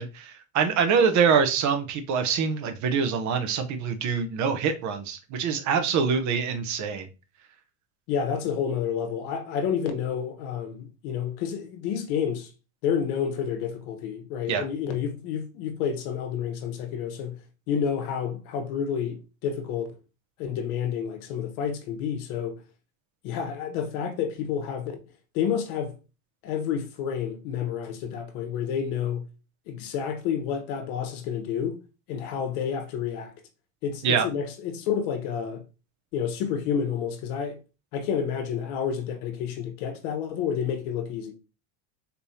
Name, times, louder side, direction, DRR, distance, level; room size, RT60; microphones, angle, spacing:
voice 1, 0.0-7.1 14.5-14.6 34.0-34.3, right 6 dB, 40° right, 0.8 m, -25 dB
voice 2, 8.1-12.5 12.8-17.4 17.7-19.9 20.4-22.6 23.2-25.0 25.3-25.9 26.4-29.3 29.7-31.8 32.1-33.3 33.8-35.6 36.1-37.6 37.9-41.3, left 7 dB, 70° left, 1.1 m, -29 dB
4.2 x 3.4 x 2.8 m
supercardioid pair, 140°, 45 cm